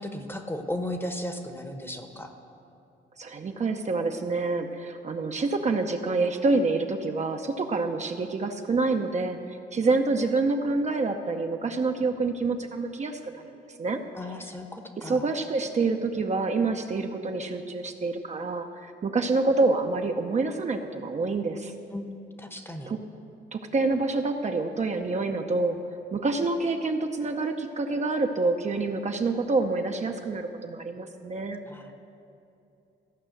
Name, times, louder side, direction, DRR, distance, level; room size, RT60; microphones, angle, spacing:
voice 1, 0.0-2.3 14.1-15.3 21.9-22.9 31.7-31.9, left 1 dB, 10° left, 6 dB, 1.0 m, -35 dB
voice 2, 3.2-14.0 15.0-21.7 22.9-23.0 23.5-25.8 26.1-31.6, right 3 dB, 35° right, 4 dB, 0.7 m, -27 dB
14.5 x 5.5 x 7.8 m, 2.7 s
cardioid pair, 90°, 20 cm